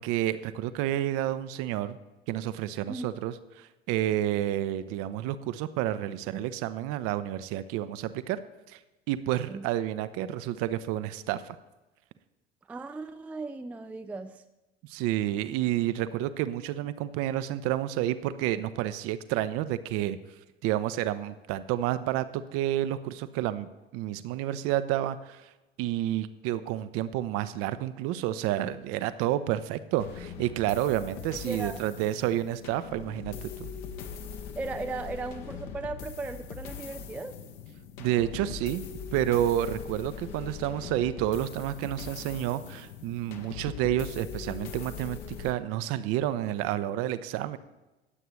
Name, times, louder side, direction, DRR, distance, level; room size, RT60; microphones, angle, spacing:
voice 1, 0.0-2.0 2.3-8.4 8.7-8.8 9.1-11.6 14.8-20.2 20.6-25.5 25.8-33.7 38.0-38.8 39.1-47.6, right 12 dB, 45° right, 13 dB, 0.7 m, -30 dB
voice 2, 12.7-14.4 31.4-31.8 34.6-37.4, right 3 dB, 5° right, 8 dB, 0.4 m, -37 dB
sound 1, 30.0-45.5, left 6 dB, 50° left, 1.2 m, -41 dB
19.5 x 7.9 x 3.2 m, 1.0 s
figure-of-eight pair, 70°, 32 cm